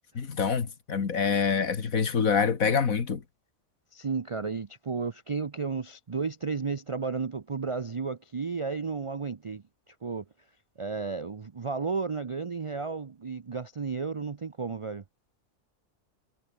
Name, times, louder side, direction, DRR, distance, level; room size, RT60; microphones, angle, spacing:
voice 1, 0.2-3.2, left 6 dB, 75° left, 2.2 m, -26 dB
voice 2, 3.9-9.6 10.0-10.2 10.8-15.0, right 5 dB, 50° right, 0.3 m, -33 dB
omnidirectional pair, 1.5 m